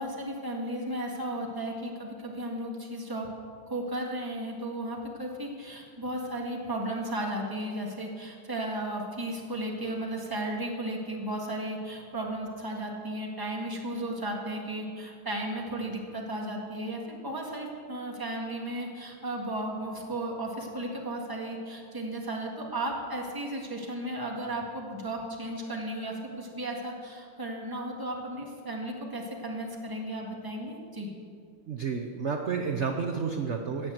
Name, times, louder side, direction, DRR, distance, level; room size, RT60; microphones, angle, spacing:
voice 1, 0.0-3.3 3.7-31.1, right 1 dB, 10° right, 0 dB, 1.5 m, -35 dB
voice 2, 31.7-33.9, right 5 dB, 75° right, 4 dB, 0.6 m, -31 dB
17.0 x 6.1 x 7.8 m, 2.2 s
omnidirectional pair, 2.3 m